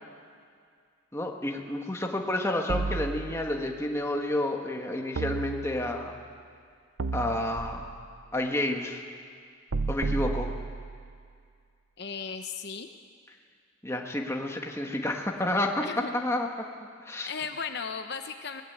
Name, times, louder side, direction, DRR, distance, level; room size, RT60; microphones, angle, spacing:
voice 1, 1.1-6.2 7.1-7.9 8.3-9.0 9.9-10.5 13.8-15.8 16.1-16.5 17.1-17.3, left 1 dB, 15° left, 2 dB, 1.7 m, -30 dB
sound 1, 2.7-3.8 5.2-6.1 7.0-8.1 9.7-11.1, right 3 dB, 70° right, 0.6 m, -33 dB
voice 2, 12.0-12.9 15.8-16.1 17.3-18.6, left 5 dB, 55° left, 7 dB, 0.9 m, -36 dB
22.0 x 19.0 x 8.2 m, 2.2 s
head